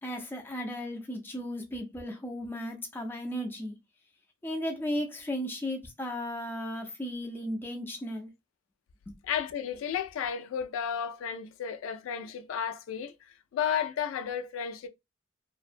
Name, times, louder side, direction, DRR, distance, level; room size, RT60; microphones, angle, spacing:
voice 1, 0.0-3.8 4.4-8.3, equal, 10° left, 0.4 m, -35 dB
voice 2, 9.2-13.1 13.5-14.9, left 8 dB, 80° left, 0.3 m, -33 dB
2.5 x 2.1 x 2.4 m
head